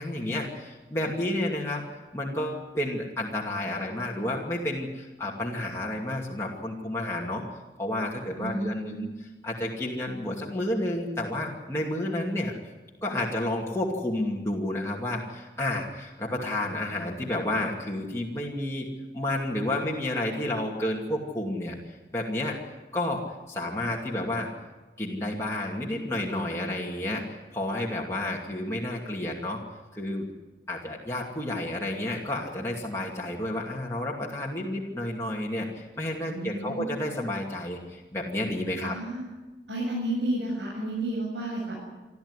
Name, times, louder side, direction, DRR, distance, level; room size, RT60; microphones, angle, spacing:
voice 1, 0.0-1.8 2.1-7.4 7.8-9.0 9.4-12.5 13.0-18.9 19.1-22.6 22.9-24.5 25.0-29.6 29.9-30.3 30.7-39.0, left 1 dB, 15° left, -4 dB, 2.6 m, -31 dB
voice 2, 8.4-9.0 36.3-37.2 38.8-39.2 39.7-41.8, right 1 dB, 85° right, -4 dB, 7.2 m, -32 dB
27.0 x 13.0 x 9.9 m, 1.2 s
head